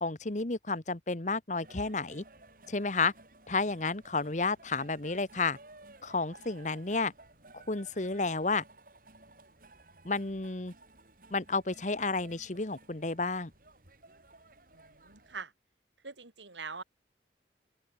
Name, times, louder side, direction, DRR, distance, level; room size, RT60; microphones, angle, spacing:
voice 1, 0.0-2.2 2.7-3.1 3.5-5.6 6.0-7.1 7.5-8.6 10.0-10.7 11.3-13.5, left 3 dB, 40° left, 1.3 m, -31 dB
sound 1, 1.6-15.4, right 2 dB, 50° right, 7.8 m, -57 dB
voice 2, 14.7-15.5 16.0-16.8, right 5 dB, 85° right, 4.0 m, -43 dB
open air
head